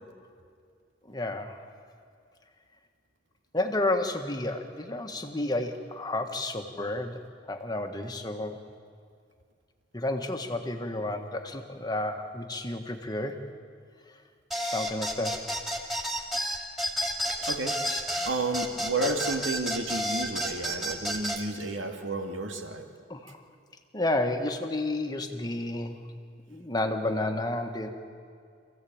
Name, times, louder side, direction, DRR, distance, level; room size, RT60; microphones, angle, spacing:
voice 1, 1.1-1.6 3.5-7.2 7.5-8.6 9.9-13.4 14.6-15.3 19.0-19.2 23.1-23.4 23.9-26.0 26.5-27.9, left 2 dB, 20° left, 5 dB, 1.5 m, -31 dB
sound 1, 14.5-21.4, equal, ahead, 2.3 m, -31 dB
voice 2, 17.3-17.8 18.3-22.8, right 2 dB, 75° right, 4 dB, 2.2 m, -31 dB
27.0 x 15.5 x 8.7 m, 2.2 s
head